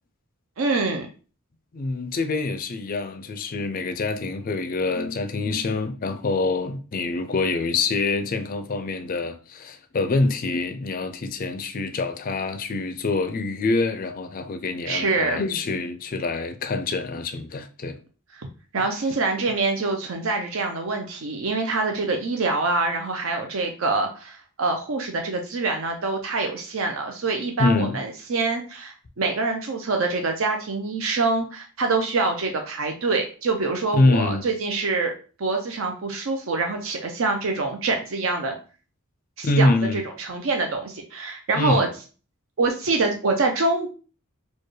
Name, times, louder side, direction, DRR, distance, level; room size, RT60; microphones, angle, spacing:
voice 1, 0.6-1.1 14.9-15.4 18.4-18.5 18.7-38.5 39.4-41.9 42.6-43.9, right 3 dB, 65° right, 0.5 m, -25 dB
voice 2, 1.7-18.0 18.8-18.9 27.6-28.0 33.9-34.4 39.4-40.0 41.5-41.9, left 3 dB, 40° left, 0.4 m, -25 dB
4.4 x 2.3 x 3.1 m
head